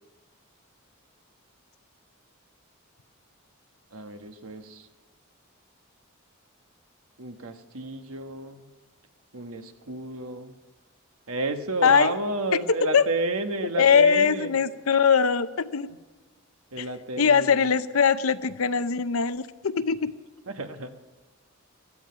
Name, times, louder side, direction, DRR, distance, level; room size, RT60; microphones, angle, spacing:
voice 1, 3.9-4.9 7.2-8.7 9.3-10.5 11.3-14.5 15.9-16.0 16.7-17.7 20.5-20.9, right 2 dB, 85° right, 1.2 m, -31 dB
voice 2, 13.8-15.9 17.2-20.1, left 6 dB, 85° left, 0.7 m, -21 dB
17.0 x 13.5 x 5.7 m
head